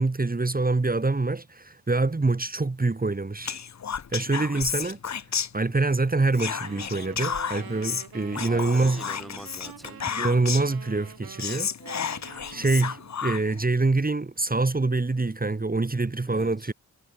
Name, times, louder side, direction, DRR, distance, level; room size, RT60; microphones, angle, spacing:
voice 1, 0.0-3.6 4.1-5.0 5.5-9.0 10.2-11.7 12.5-16.7, right 3 dB, 25° right, 2.1 m, -25 dB
Whispering, 3.4-6.0 6.3-10.8 11.1-11.2 11.4-13.6, left 7 dB, 50° left, 1.1 m, -32 dB
sound 1, 6.3-13.2, right 8 dB, 80° right, 3.5 m, -45 dB
voice 2, 8.5-10.2 16.3-16.7, equal, ahead, 2.1 m, -43 dB
cardioid pair, 60°, 36 cm